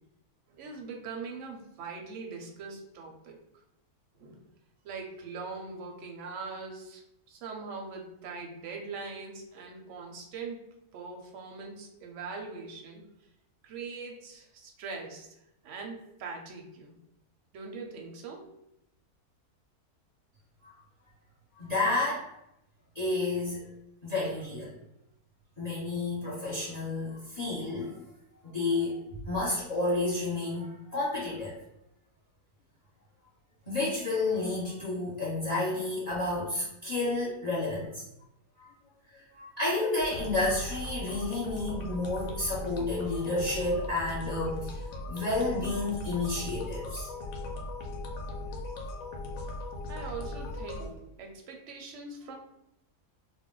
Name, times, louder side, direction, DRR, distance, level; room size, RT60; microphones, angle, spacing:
voice 1, 0.5-3.4 4.1-4.4 4.8-7.0 7.3-13.0 13.6-15.3 15.6-17.0 17.5-18.5 49.9-52.4, right 4 dB, 65° right, 1 dB, 0.8 m, -42 dB
voice 2, 21.5-22.3 22.9-23.6 24.0-24.7 25.6-28.0 28.4-31.6 33.7-38.0 38.6-38.7 39.1-44.8 45.1-47.1, left 2 dB, 30° left, -8 dB, 1.0 m, -31 dB
sound 1, 40.0-50.9, left 1 dB, 70° left, 0.9 m, -39 dB
2.5 x 2.1 x 3.7 m, 0.83 s
omnidirectional pair, 1.7 m